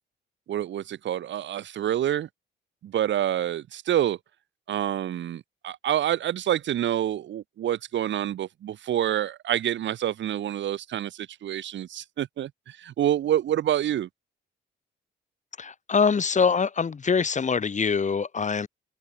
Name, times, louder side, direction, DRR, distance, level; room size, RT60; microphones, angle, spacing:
voice 1, 0.5-2.3 2.8-4.2 4.7-14.1, right 11 dB, 65° right, 1.8 m, -27 dB
voice 2, 15.6-18.7, left 5 dB, 35° left, 3.5 m, -24 dB
cardioid pair, 90°, 20 cm